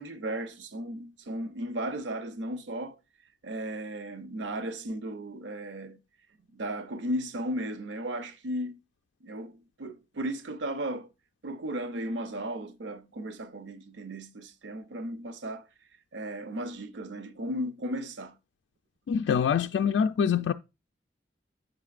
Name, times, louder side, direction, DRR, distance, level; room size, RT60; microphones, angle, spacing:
voice 1, 0.0-3.0 3.4-6.0 6.5-8.8 9.2-11.1 11.4-15.6 16.1-18.4, right 1 dB, 80° right, 0.6 m, -35 dB
voice 2, 19.1-20.5, left 7 dB, 80° left, 0.3 m, -25 dB
7.8 x 5.8 x 2.4 m
head